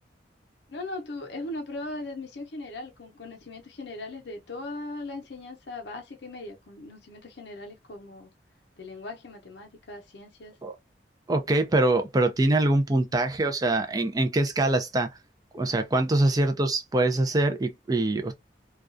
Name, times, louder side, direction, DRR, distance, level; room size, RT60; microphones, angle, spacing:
voice 1, 0.7-8.3 8.8-10.6, left 2 dB, 75° left, 0.6 m, -39 dB
voice 2, 11.3-15.1 15.5-18.3, right 2 dB, 20° right, 0.4 m, -24 dB
2.3 x 2.2 x 2.5 m
head